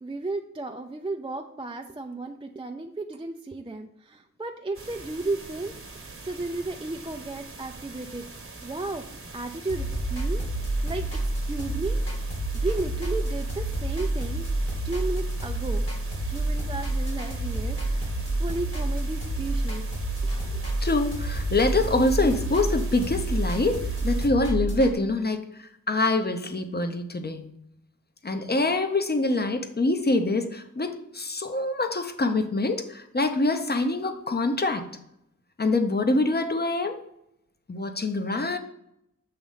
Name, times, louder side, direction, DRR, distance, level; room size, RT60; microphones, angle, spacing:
voice 1, 0.0-8.2 8.6-9.0 9.3-10.5 10.8-12.2 12.5-14.5 14.8-15.9 16.3-18.1 18.4-19.9 20.2-20.6, right 2 dB, 15° right, 4 dB, 0.4 m, -34 dB
sound 1, 4.7-24.3, right 3 dB, 45° right, 1.0 m, -43 dB
sound 2, 9.7-24.9, right 1 dB, 50° left, 2.1 m, -28 dB
voice 2, 20.8-27.4 28.2-34.9 35.6-37.0 37.7-38.6, left 2 dB, 30° left, 7 dB, 0.8 m, -25 dB
6.8 x 3.1 x 5.6 m, 0.79 s
wide cardioid pair, 55°, 31 cm